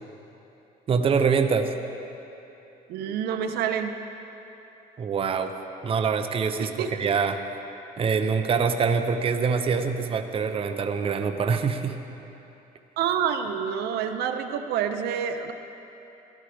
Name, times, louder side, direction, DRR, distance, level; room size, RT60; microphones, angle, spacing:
voice 1, 0.9-1.7 5.0-5.5 5.8-7.4 8.0-12.0, right 5 dB, 35° right, 6 dB, 0.6 m, -24 dB
voice 2, 2.9-4.0 6.6-6.9 13.0-15.5, right 8 dB, 75° right, 7 dB, 0.7 m, -27 dB
15.0 x 12.5 x 3.4 m, 2.9 s
cardioid pair, 110°, 17 cm